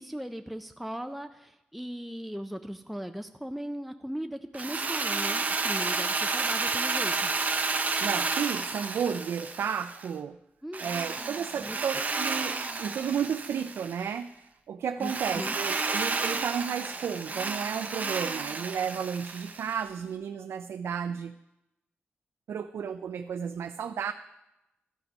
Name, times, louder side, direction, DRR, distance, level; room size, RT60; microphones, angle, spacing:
voice 1, 0.0-7.3 10.6-10.8 11.2-11.8 15.0-15.5, equal, ahead, 7 dB, 0.4 m, -38 dB
Drill, 4.5-10.1 10.7-14.0 15.0-19.8, right 4 dB, 40° right, 0.7 m, -31 dB
voice 2, 8.0-10.4 10.8-21.3 22.5-24.1, right 7 dB, 80° right, 9 dB, 0.3 m, -33 dB
12.5 x 5.9 x 5.3 m, 0.93 s
wide cardioid pair, 115°, 4 cm